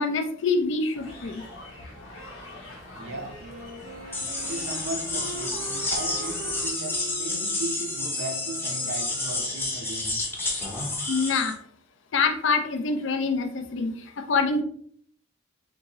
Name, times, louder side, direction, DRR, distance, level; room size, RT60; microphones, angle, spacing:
voice 1, 0.0-1.4 11.1-11.6 12.1-14.6, left 4 dB, 70° left, 6 dB, 0.5 m, -25 dB
sound 1, 0.9-6.7, left 1 dB, 85° left, 0.9 m, -44 dB
voice 2, 2.9-3.4 4.4-10.2, right 2 dB, 85° right, 3 dB, 0.8 m, -36 dB
Wind instrument woodwind instrument, 3.0-9.7, right 4 dB, 55° right, 0.4 m, -43 dB
sound 2, 4.1-11.5, left 2 dB, 10° left, 0.6 m, -30 dB
3.6 x 2.7 x 2.9 m, 0.63 s
head